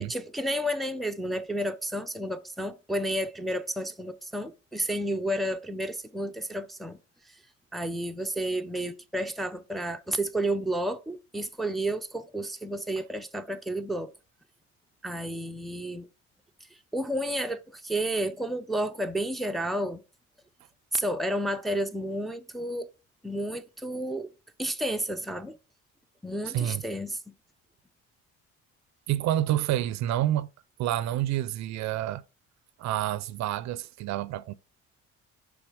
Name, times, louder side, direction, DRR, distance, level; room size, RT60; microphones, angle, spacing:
voice 1, 0.0-7.0 7.3-7.4 7.7-14.1 15.0-16.1 16.9-20.0 20.9-22.9 23.2-24.3 24.6-25.6 26.2-27.3, right 1 dB, ahead, 0.5 m, -31 dB
voice 2, 29.1-30.5 30.8-32.2 32.8-34.5, right 13 dB, 65° right, 0.5 m, -28 dB
6.0 x 3.6 x 4.9 m
cardioid pair, 105°, 30 cm